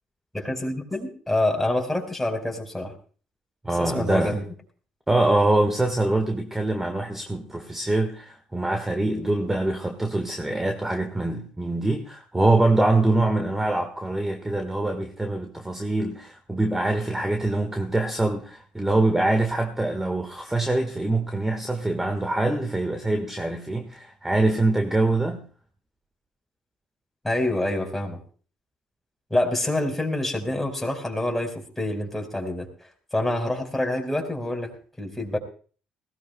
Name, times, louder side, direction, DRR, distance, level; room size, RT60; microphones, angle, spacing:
voice 1, 0.3-2.9 3.8-4.4 27.2-28.2 29.3-32.7 33.1-34.7 35.0-35.4, left 1 dB, 5° left, 1 dB, 4.7 m, -26 dB
voice 2, 3.6-4.4 5.1-25.4, right 2 dB, 10° right, 5 dB, 1.5 m, -24 dB
20.5 x 17.5 x 2.3 m, 0.41 s
supercardioid pair, 75°, 3 cm